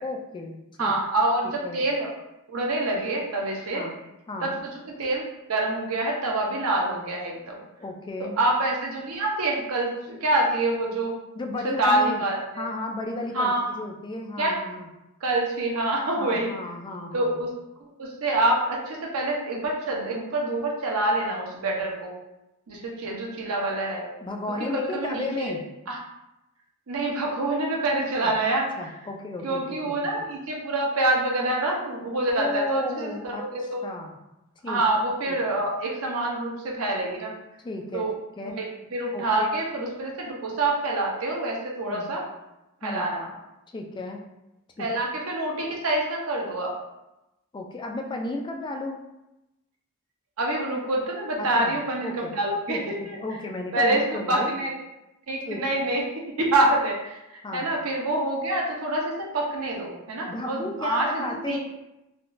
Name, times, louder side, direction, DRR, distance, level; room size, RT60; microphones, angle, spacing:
voice 1, 0.0-0.9 1.6-1.8 3.7-4.0 4.3-4.6 7.8-8.4 11.3-12.2 12.6-14.9 16.2-17.4 24.2-25.6 28.2-28.3 28.8-30.3 32.4-33.4 33.8-34.2 34.6-34.8 35.3-35.6 37.6-38.1 38.4-38.6 39.1-39.5 41.8-42.1 42.8-43.1 43.7-44.2 44.8-44.9 47.5-49.0 51.4-51.8 52.0-52.3 52.7-54.6 55.5-55.8 57.4-57.7 60.3-61.6, left 2 dB, 20° left, 2 dB, 0.3 m, -34 dB
voice 2, 0.8-2.1 2.5-3.8 4.4-4.5 5.0-7.6 8.2-11.1 11.6-12.6 13.3-13.6 14.4-14.5 15.2-16.5 17.1-17.5 18.0-22.1 22.7-24.1 24.6-25.5 25.9-26.0 26.9-28.7 29.4-33.8 34.7-37.3 37.9-38.1 38.4-42.2 42.8-43.3 44.8-46.7 50.4-53.2 53.7-54.0 54.3-54.7 55.3-56.0 56.4-61.6, right 2 dB, 75° right, -1 dB, 0.7 m, -26 dB
3.6 x 2.3 x 2.5 m, 0.93 s
head